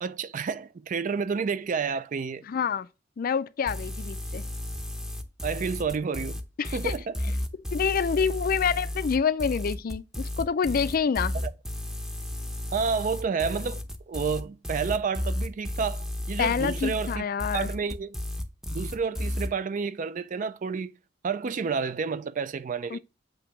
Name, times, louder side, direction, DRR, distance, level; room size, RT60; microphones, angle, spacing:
voice 1, 0.0-2.4 5.4-6.4 6.7-7.1 11.4-11.5 12.7-17.2 17.5-18.2 18.7-20.9 21.2-23.0, right 5 dB, 45° right, 0.4 m, -30 dB
voice 2, 2.5-2.9 3.2-4.5 6.6-6.9 7.7-11.4 16.4-17.7 22.9-23.0, left 6 dB, 50° left, 0.4 m, -27 dB
sound 1, 3.7-19.5, left 1 dB, 5° right, 0.7 m, -33 dB
7.9 x 2.8 x 5.8 m
head